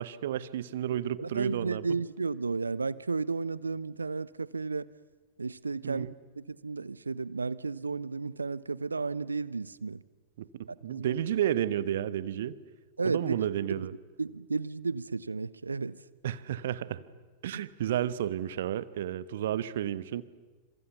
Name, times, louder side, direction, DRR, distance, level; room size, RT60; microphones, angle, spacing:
voice 1, 0.0-2.0 5.8-6.1 10.4-12.5 13.0-13.9 16.2-17.0 17.4-20.2, right 11 dB, 60° right, 17 dB, 1.1 m, -32 dB
voice 2, 0.9-4.9 5.4-6.1 6.4-10.0 10.7-11.2 13.0-13.4 13.7-13.9 14.2-16.0 17.5-17.6, right 4 dB, 80° right, 20 dB, 0.7 m, -33 dB
28.5 x 27.0 x 6.9 m, 1.3 s
figure-of-eight pair, 90°, 0 cm